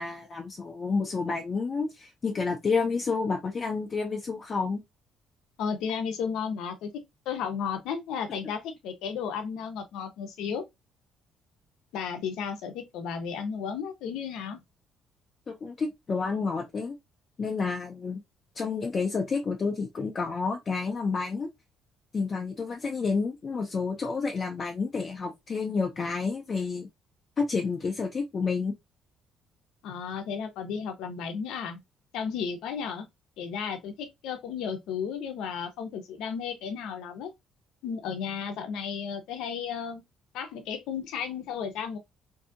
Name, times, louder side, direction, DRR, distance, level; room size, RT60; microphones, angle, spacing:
voice 1, 0.0-4.8 15.5-16.9 17.4-18.2 18.6-21.5 22.1-26.9 27.4-28.7, left 4 dB, 30° left, 0.4 m, -30 dB
voice 2, 5.6-6.9 7.3-10.6 11.9-14.6 29.8-31.8 32.1-33.1 33.4-37.3 37.8-40.0 40.3-42.0, left 6 dB, 90° left, 0.6 m, -33 dB
2.6 x 2.6 x 2.4 m
cardioid pair, 150°, 0 cm